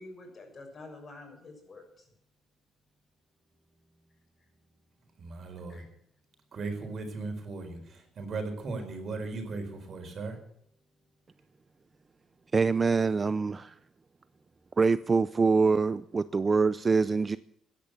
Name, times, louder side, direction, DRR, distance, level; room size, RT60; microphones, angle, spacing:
voice 1, 0.0-2.0 5.7-5.8, left 2 dB, 45° left, 4 dB, 6.8 m, -48 dB
voice 2, 5.2-5.8 6.5-10.4, right 3 dB, 55° right, 5 dB, 4.5 m, -37 dB
voice 3, 12.5-13.8 14.8-17.4, right 4 dB, 30° right, 15 dB, 0.5 m, -25 dB
14.0 x 10.5 x 7.7 m, 0.70 s
cardioid pair, 90°, 0 cm